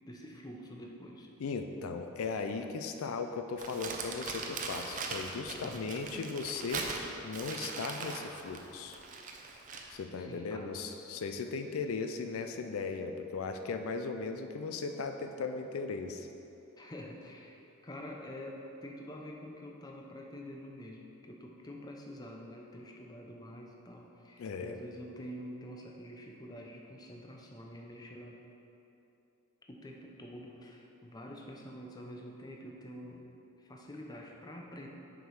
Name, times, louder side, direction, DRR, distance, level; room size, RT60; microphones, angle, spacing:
voice 1, 0.1-1.3 5.6-5.9 10.2-10.7 16.8-28.4 29.7-33.3 33.6-34.9, equal, 20° left, 0 dB, 0.6 m, -47 dB
voice 2, 1.4-6.9 7.2-9.0 9.9-16.3 24.4-24.8, left 4 dB, 80° left, 6 dB, 0.4 m, -37 dB
Crumpling crinkling, 3.6-9.9, right 4 dB, 40° right, 0.5 m, -40 dB
6.5 x 5.0 x 4.7 m, 2.9 s
head